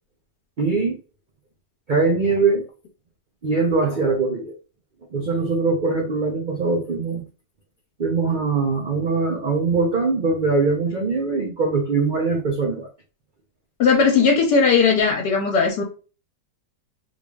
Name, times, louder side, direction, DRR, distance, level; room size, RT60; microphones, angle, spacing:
voice 1, 0.6-1.0 1.9-2.7 3.4-4.5 5.1-7.2 8.0-12.9, right 4 dB, 65° right, 0.4 m, -22 dB
voice 2, 13.8-15.8, left 5 dB, 75° left, 1.5 m, -17 dB
3.8 x 3.2 x 2.3 m
omnidirectional pair, 1.8 m